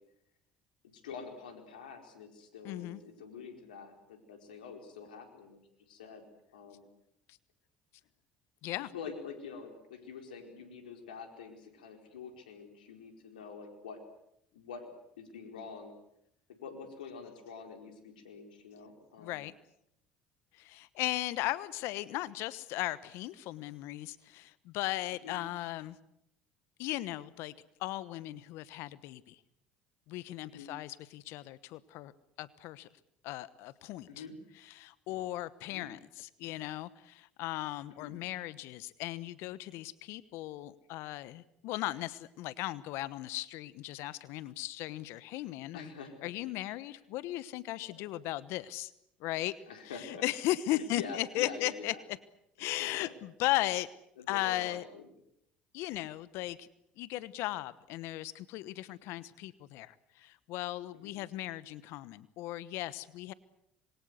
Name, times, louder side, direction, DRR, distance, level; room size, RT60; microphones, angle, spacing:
voice 1, 0.9-5.6 5.9-6.2 6.5-6.8 8.9-14.0 14.5-14.9 15.2-15.9 16.6-19.4 25.2-25.4 30.4-30.7 34.1-34.4 35.7-35.9 38.0-38.1 45.7-46.3 46.9-47.0 49.7-50.2 50.7-52.0 52.8-53.1 54.2-55.0 61.0-61.1, left 5 dB, 90° left, 5 dB, 4.5 m, -46 dB
voice 2, 2.6-3.0 8.6-8.9 19.2-19.5 20.5-26.0 26.8-27.5 27.8-29.4 30.1-32.1 32.4-32.9 33.2-34.2 34.6-45.9 46.2-48.9 49.2-49.5 49.9-52.2 52.6-53.9 54.3-54.9 55.7-56.7 57.0-63.3, left 16 dB, 70° left, 17 dB, 1.1 m, -37 dB
27.0 x 23.0 x 8.1 m, 0.77 s
hypercardioid pair, 65°, 5 cm